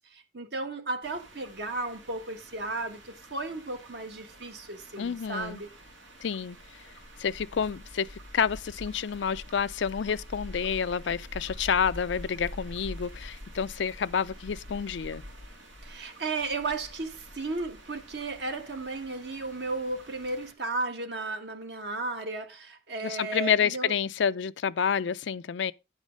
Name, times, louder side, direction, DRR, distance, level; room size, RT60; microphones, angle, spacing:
voice 1, 0.1-5.7 15.8-23.9, right 3 dB, 60° right, 1.6 m, -34 dB
sound 1, 1.0-20.5, equal, 90° right, 2.9 m, -46 dB
voice 2, 5.0-5.6 6.2-6.6 7.2-8.1 8.3-15.2 23.0-25.7, left 7 dB, 75° left, 0.4 m, -29 dB
10.5 x 4.9 x 5.1 m
head